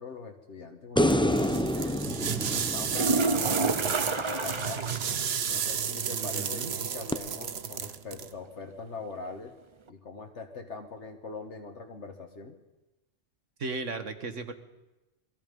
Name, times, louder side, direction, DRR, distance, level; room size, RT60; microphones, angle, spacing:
voice 1, 0.0-2.0 2.5-4.9 5.5-9.5 9.9-12.6, left 4 dB, 70° left, 4 dB, 1.8 m, -42 dB
sound 1, 1.0-4.3 7.1-7.2, equal, 5° left, 0.8 m, -28 dB
sound 2, 1.1-8.3, right 7 dB, 60° right, 1.2 m, -32 dB
sound 3, 2.9-5.1 5.5-5.6 6.0-6.1 9.9-10.0, right 3 dB, 25° right, 0.9 m, -29 dB
voice 2, 6.1-6.7 13.6-14.5, right 4 dB, 90° right, 9 dB, 1.9 m, -36 dB
27.0 x 21.0 x 5.4 m, 1.0 s
omnidirectional pair, 1.2 m